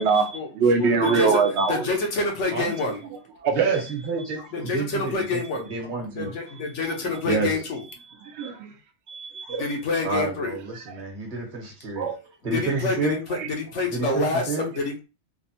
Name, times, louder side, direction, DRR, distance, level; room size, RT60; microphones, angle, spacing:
voice 1, 0.0-1.8 3.4-3.8 8.3-8.7 9.1-9.6 12.0-12.2, right 5 dB, 75° right, 0.8 m, -23 dB
voice 2, 0.8-1.4 1.7-3.0 4.5-5.7 6.1-7.8 9.6-10.6 12.4-15.0, left 3 dB, 90° left, 1.2 m, -27 dB
voice 3, 3.5-6.3 7.3-7.5 10.0-12.1 12.4-13.2 13.9-14.7, right 4 dB, 45° right, 1.1 m, -29 dB
3.4 x 2.1 x 2.7 m
omnidirectional pair, 1.2 m